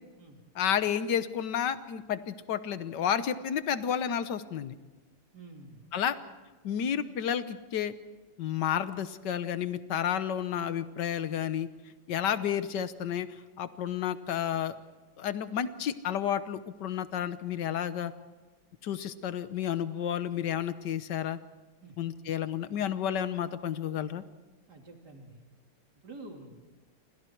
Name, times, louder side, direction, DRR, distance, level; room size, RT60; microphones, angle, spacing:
voice 1, 0.5-4.7 5.9-6.2 6.6-7.9 8.4-11.7 12.1-14.7 15.2-18.1 18.8-21.4 22.0-24.2, left 9 dB, 60° left, 12 dB, 1.5 m, -31 dB
voice 2, 5.3-5.8 21.8-22.0 24.7-25.4 26.0-26.6, right 2 dB, 45° right, 2 dB, 3.7 m, -48 dB
29.0 x 25.0 x 4.6 m, 1.2 s
omnidirectional pair, 2.4 m